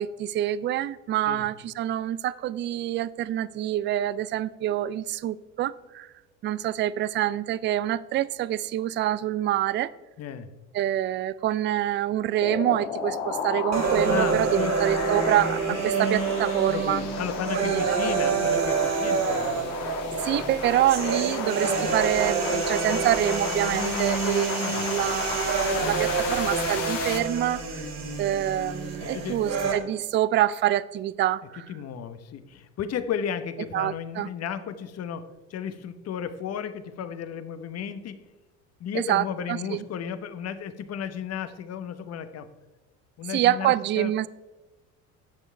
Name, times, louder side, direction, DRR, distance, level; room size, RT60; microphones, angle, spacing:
voice 1, 0.0-6.1 6.4-9.9 10.7-17.0 17.5-18.0 20.2-27.8 28.2-31.6 33.7-34.3 38.9-39.8 43.3-44.3, right 12 dB, 30° right, 18 dB, 0.4 m, -26 dB
voice 2, 10.2-10.5 14.1-14.8 16.7-19.7 20.3-20.6 24.6-24.8 29.0-29.4 31.7-38.2 38.8-42.5 43.2-44.1, left 8 dB, 45° left, 12 dB, 1.0 m, -34 dB
sound 1, 12.4-27.2, left 6 dB, 90° left, 1.6 m, -33 dB
sound 2, 13.7-29.7, right 5 dB, 50° right, 2.6 m, -27 dB
10.5 x 7.3 x 4.5 m, 1.1 s
supercardioid pair, 90°, 36 cm